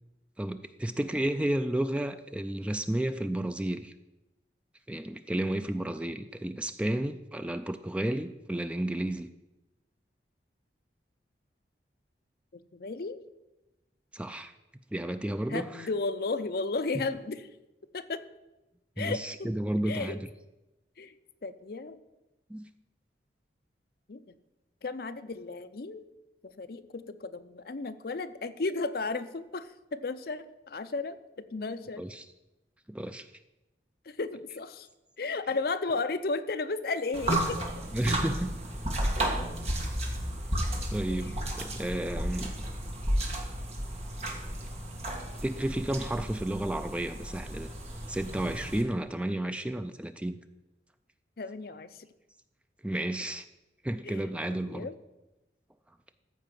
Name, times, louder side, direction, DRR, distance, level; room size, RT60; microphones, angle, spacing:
voice 1, 0.4-3.9 4.9-9.3 14.1-14.5 14.9-15.9 19.0-20.2 22.5-22.7 32.0-32.2 32.9-33.3 37.9-38.5 40.9-42.5 45.4-47.7 48.1-50.4 52.8-53.4 53.8-54.9, right 1 dB, 5° right, 9 dB, 0.3 m, -32 dB
voice 2, 12.5-13.2 15.5-17.5 17.9-18.2 19.0-19.2 19.8-20.2 21.0-21.1 21.4-22.0 24.1-24.4 24.8-26.1 26.4-31.2 31.5-32.1 34.1-34.9 35.2-37.6 41.2-41.3 51.4-52.1 54.0-54.9, left 3 dB, 55° left, 11 dB, 0.5 m, -34 dB
sound 1, 37.1-48.8, right 1 dB, 35° right, 1.6 m, -33 dB
14.0 x 4.7 x 7.6 m, 1.0 s
head